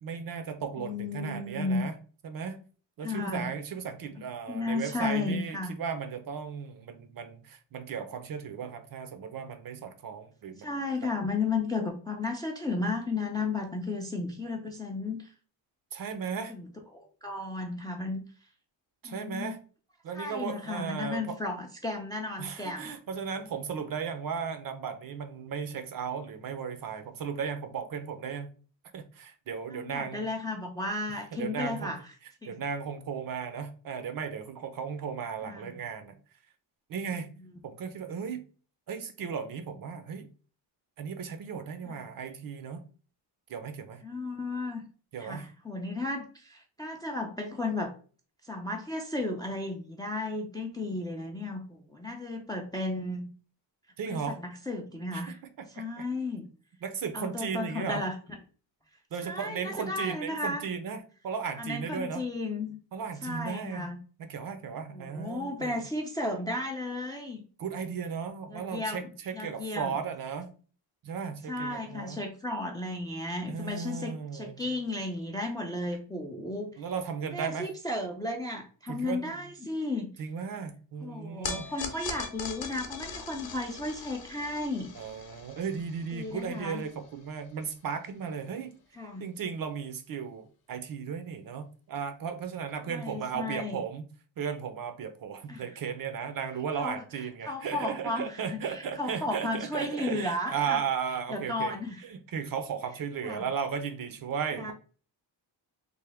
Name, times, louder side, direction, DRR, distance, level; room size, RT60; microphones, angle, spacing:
voice 1, 0.0-2.0 2.2-2.6 3.0-10.7 15.9-16.5 19.0-19.6 20.0-21.4 22.4-28.5 28.9-30.3 31.3-31.9 32.5-36.1 36.9-37.3 37.6-38.4 38.9-40.3 41.0-42.8 43.5-44.0 45.1-45.5 54.0-54.4 55.1-56.0 56.8-58.0 59.1-62.2 62.9-65.8 67.6-70.5 71.0-72.2 73.5-74.6 76.8-77.7 78.9-79.3 80.2-81.7 84.9-88.7 89.2-94.0 94.4-101.8 102.0-104.7, right 6 dB, 50° right, 0.5 m, -35 dB
voice 2, 0.8-1.8 3.0-3.5 4.5-5.7 10.6-15.2 16.5-16.7 16.9-18.2 19.0-19.5 20.1-22.9 29.7-32.0 32.4-32.5 35.4-35.7 37.4-37.5 41.9-42.0 44.0-44.8 45.2-47.9 48.4-53.3 54.1-55.4 55.7-56.5 57.1-58.1 59.3-60.7 61.6-62.7 63.2-64.0 64.9-67.4 68.5-69.0 69.3-69.9 71.5-76.7 77.3-80.1 81.0-84.9 86.1-86.8 88.9-89.2 92.9-93.8 95.5-95.7 96.8-97.0 97.4-100.8 101.3-102.0 103.2-103.4 104.6-104.7, left 2 dB, 10° left, 0.3 m, -34 dB
sound 1, 81.4-87.8, left 5 dB, 55° left, 0.7 m, -41 dB
3.3 x 2.1 x 3.3 m
cardioid pair, 115°, 46 cm